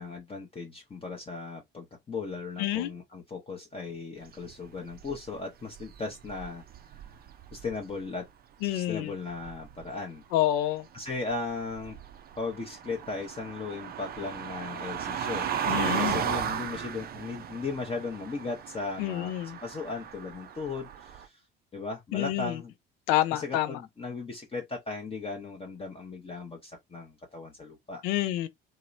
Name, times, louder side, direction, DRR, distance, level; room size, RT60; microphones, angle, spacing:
voice 1, 0.0-6.6 7.5-8.3 8.6-10.2 10.9-12.0 12.4-21.4 21.7-22.7 23.3-28.0, left 4 dB, 20° left, 0.7 m, -37 dB
voice 2, 2.6-2.9 8.6-9.1 10.3-10.8 15.7-16.2 19.0-19.6 22.1-22.6 23.1-23.8 28.0-28.5, left 14 dB, 65° left, 0.5 m, -28 dB
sound 1, 4.3-5.4 5.7-7.9 9.3-9.9 11.1-21.3, right 8 dB, 35° right, 0.5 m, -36 dB
2.8 x 2.1 x 2.4 m
hypercardioid pair, 60°, 29 cm